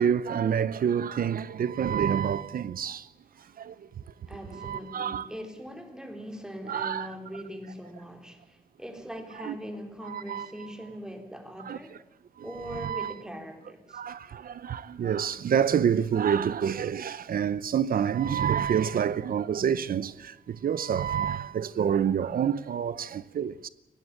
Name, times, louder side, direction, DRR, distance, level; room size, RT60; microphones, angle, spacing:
voice 1, 0.0-3.1 3.6-3.9 4.5-5.3 6.7-7.1 9.4-9.5 10.0-10.5 11.7-11.8 12.4-13.1 13.9-23.7, right 8 dB, 70° right, 0.8 m, -28 dB
voice 2, 4.3-12.0 12.4-14.0, equal, 5° right, 3.9 m, -41 dB
20.5 x 17.0 x 8.5 m
wide cardioid pair, 120°, 15 cm